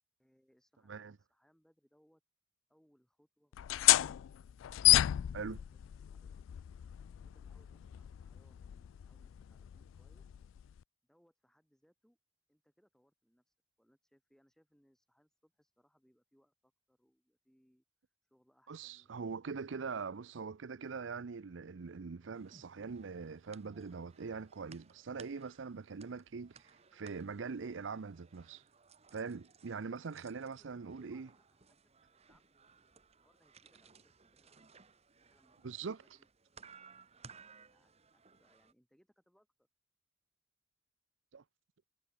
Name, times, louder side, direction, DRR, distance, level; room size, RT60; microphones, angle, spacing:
voice 1, 0.2-2.2 2.7-4.1 5.7-6.3 7.1-10.3 11.0-12.2 12.5-13.4 13.8-17.8 18.3-19.2 19.5-20.3 30.3-32.8 33.2-34.7 35.3-36.3 37.5-39.7, equal, 5° left, 6.8 m, -73 dB
sound 1, 3.5-10.8, left 16 dB, 90° left, 0.3 m, -32 dB
voice 2, 18.7-28.6 29.1-31.3 35.6-36.0 41.3-41.4, right 5 dB, 75° right, 0.6 m, -42 dB
Telephone, 19.6-24.6, left 1 dB, 35° left, 7.6 m, -78 dB
sound 2, 22.3-38.7, right 5 dB, 35° right, 1.5 m, -61 dB
head